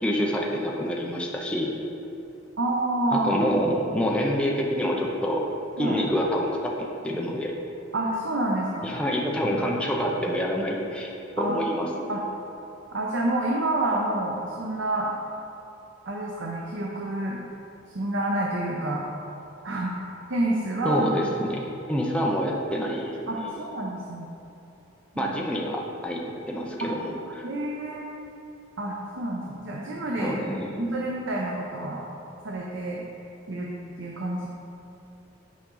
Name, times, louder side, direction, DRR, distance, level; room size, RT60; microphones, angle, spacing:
voice 1, 0.0-1.7 3.1-5.5 5.8-7.5 8.8-12.1 20.8-23.6 25.2-27.4 30.2-30.8, equal, 5° left, -2 dB, 0.6 m, -27 dB
voice 2, 2.6-3.4 5.8-6.0 7.9-8.9 11.4-11.6 12.1-12.2 12.9-15.1 16.1-17.4 17.9-19.1 19.6-19.9 20.3-21.0 23.3-24.3 25.1-25.3 26.8-26.9 27.4-28.0 28.8-30.3 30.8-32.0 32.4-33.0 33.5-33.7 34.0-34.5, right 1 dB, 75° right, -2 dB, 0.8 m, -28 dB
8.5 x 5.2 x 3.8 m, 2.9 s
head